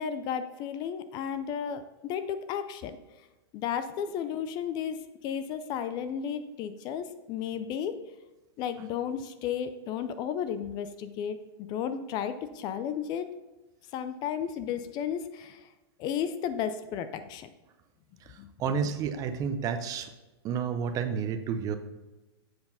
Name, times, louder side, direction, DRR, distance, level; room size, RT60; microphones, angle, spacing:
voice 1, 0.0-3.0 3.5-8.0 8.6-13.3 13.9-15.7 16.0-17.5 18.4-18.5 18.8-18.9, left 8 dB, 30° left, 11 dB, 0.4 m, -33 dB
voice 2, 18.6-20.1 20.4-21.8, right 6 dB, 25° right, 9 dB, 0.6 m, -30 dB
7.8 x 4.6 x 5.5 m, 1.1 s
hypercardioid pair, 140°, 14 cm